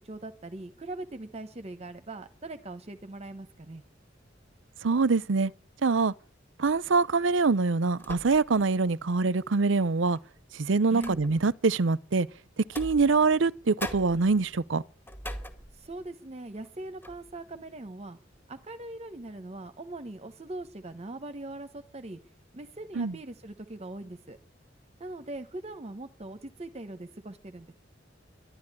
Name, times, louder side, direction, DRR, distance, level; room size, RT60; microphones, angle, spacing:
voice 1, 0.0-3.8 10.9-11.2 15.7-18.2 18.5-22.2 22.5-24.4 25.0-27.7, right 2 dB, 35° right, 1.0 m, -41 dB
voice 2, 4.8-5.5 5.8-6.1 6.6-10.2 10.6-12.3 12.8-14.8 23.0-23.1, right 4 dB, 75° right, 0.7 m, -24 dB
sound 1, 6.6-7.0 8.0-8.7 9.1-9.2 10.1-11.6 12.6-13.5 13.8-16.1 16.5-16.7 17.0-17.4, left 1 dB, 10° left, 2.1 m, -42 dB
12.0 x 11.5 x 9.9 m
head